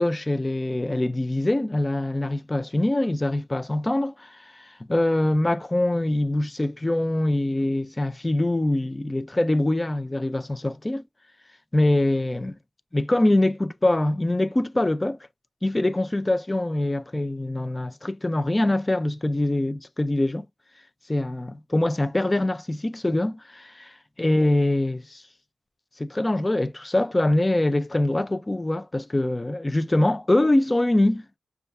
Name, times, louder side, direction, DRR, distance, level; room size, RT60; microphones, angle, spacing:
voice 1, 0.0-11.0 11.7-12.6 12.9-15.2 15.6-20.5 21.1-25.2 26.0-31.3, left 1 dB, 20° left, 0.4 m, -24 dB
6.6 x 2.3 x 3.4 m
wide cardioid pair, 120°, 0 cm